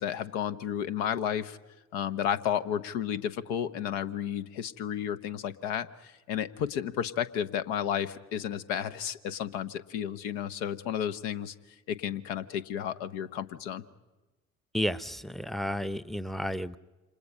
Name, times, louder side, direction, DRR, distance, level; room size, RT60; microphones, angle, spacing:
voice 1, 0.0-1.6 1.9-11.5 11.9-13.8, left 9 dB, 65° left, 11 dB, 1.1 m, -32 dB
voice 2, 14.7-16.8, equal, ahead, 17 dB, 0.8 m, -32 dB
28.5 x 26.5 x 5.5 m, 1.1 s
figure-of-eight pair, 50°, 39 cm